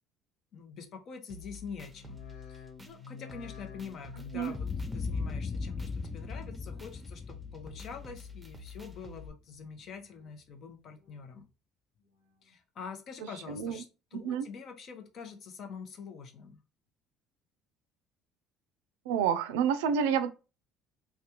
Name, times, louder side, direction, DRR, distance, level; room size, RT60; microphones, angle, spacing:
voice 1, 0.5-2.2 2.5-4.7 4.9-11.4 12.4-13.9 14.1-16.6, left 6 dB, 55° left, 0.8 m, -45 dB
sound 1, 1.3-9.3, left 4 dB, 15° right, 0.7 m, -48 dB
sound 2, 1.9-7.3 7.6-8.2 8.7-9.3 9.8-10.4 10.9-11.5 12.0-12.6 13.1-13.2, left 6 dB, 90° left, 0.9 m, -53 dB
Boom, 4.5-8.8, left 4 dB, 25° left, 0.3 m, -38 dB
voice 2, 13.2-13.8 14.1-14.5 19.1-20.3, right 7 dB, 85° right, 0.4 m, -29 dB
3.3 x 2.3 x 2.8 m
supercardioid pair, 75°, 0 cm